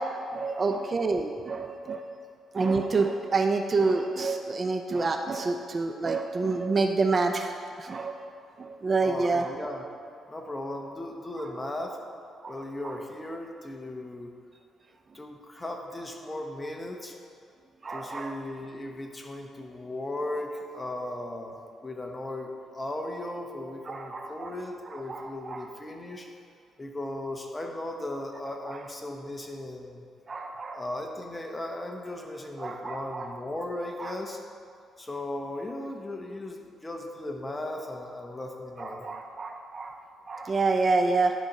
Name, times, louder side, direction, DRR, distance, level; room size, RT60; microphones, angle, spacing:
voice 1, 0.3-2.0 2.5-7.5 7.8-8.2 8.6-9.5 12.4-12.5 17.8-18.3 23.9-24.5 24.9-25.7 30.3-30.8 32.6-33.3 34.0-34.1 38.8-40.0 40.3-41.3, right 3 dB, 35° right, 5 dB, 0.5 m, -28 dB
voice 2, 9.0-9.8 10.3-12.0 12.5-14.3 15.1-17.2 17.9-26.3 26.8-30.0 30.7-34.4 35.0-39.1, left 1 dB, 20° left, 2 dB, 1.1 m, -37 dB
11.5 x 4.4 x 5.4 m, 2.3 s
cardioid pair, 90°, 0 cm